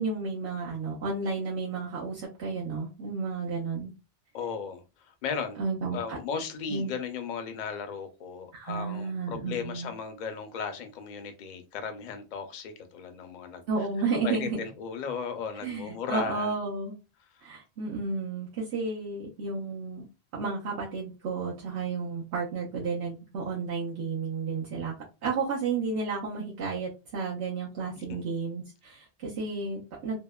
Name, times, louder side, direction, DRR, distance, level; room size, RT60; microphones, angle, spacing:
voice 1, 0.0-3.9 5.6-6.2 6.7-6.9 8.5-9.9 13.7-14.6 15.6-16.9 17.4-20.1 20.3-24.9 25.2-30.2, right 4 dB, 80° right, 0.9 m, -32 dB
voice 2, 4.3-5.6 5.9-13.7 14.2-16.5 28.1-28.2, left 6 dB, 55° left, 0.5 m, -36 dB
2.8 x 2.0 x 2.2 m
omnidirectional pair, 1.1 m